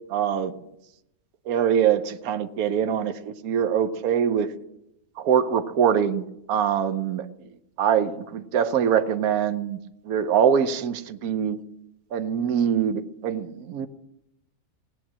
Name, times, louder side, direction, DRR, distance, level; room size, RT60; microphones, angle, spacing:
voice 1, 0.1-0.5 1.5-4.5 5.2-6.2 6.5-7.3 7.8-9.8 10.0-11.6 12.1-13.9, right 8 dB, 75° right, 10 dB, 1.3 m, -23 dB
18.0 x 9.8 x 7.4 m, 0.83 s
omnidirectional pair, 1.6 m